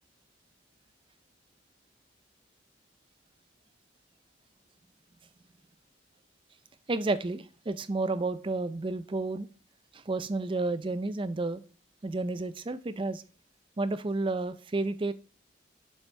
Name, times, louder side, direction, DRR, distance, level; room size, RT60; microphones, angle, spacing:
voice 1, 6.9-9.5 9.9-11.6 12.0-13.2 13.8-15.1, right 2 dB, 30° right, 0.4 m, -31 dB
7.0 x 5.9 x 3.3 m
head